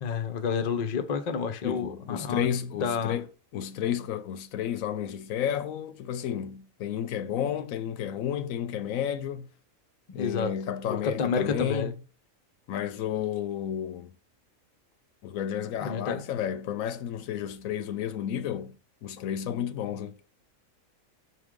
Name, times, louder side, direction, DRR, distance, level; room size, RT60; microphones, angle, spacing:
voice 1, 0.0-2.5 2.8-3.2 10.2-10.5 10.9-11.9 15.8-16.2, left 5 dB, 45° left, 0.6 m, -29 dB
voice 2, 1.6-3.3 3.5-9.5 10.1-12.0 12.7-14.1 15.2-18.8 19.0-20.2, left 9 dB, 75° left, 1.0 m, -32 dB
6.0 x 4.7 x 3.6 m
omnidirectional pair, 1.4 m